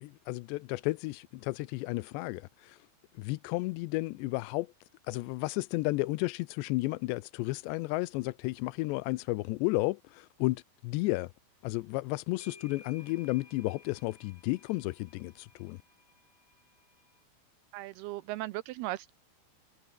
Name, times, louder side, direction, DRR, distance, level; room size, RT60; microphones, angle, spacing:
voice 1, 0.0-2.8 3.1-4.7 5.1-11.3 11.6-15.8, left 21 dB, 85° left, 2.8 m, -33 dB
sound 1, 11.8-11.9 12.4-17.2, left 3 dB, 25° left, 5.2 m, -58 dB
voice 2, 17.7-19.1, right 17 dB, 80° right, 2.4 m, -37 dB
omnidirectional pair, 5.0 m